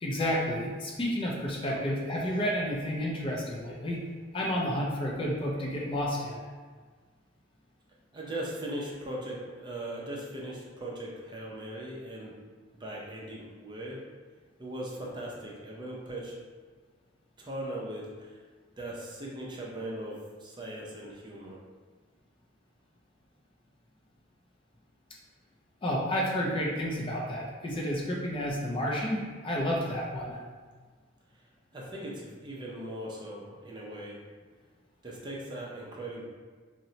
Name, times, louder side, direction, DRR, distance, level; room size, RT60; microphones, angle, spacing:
voice 1, 0.0-4.0 4.3-6.5 25.8-30.4, equal, 25° left, -3 dB, 0.4 m, -31 dB
voice 2, 8.1-12.4 12.8-14.0 14.6-16.3 17.4-18.4 18.8-21.6 31.7-34.2 35.0-36.3, right 1 dB, 25° right, -4 dB, 0.5 m, -39 dB
2.8 x 2.1 x 3.9 m, 1.5 s
head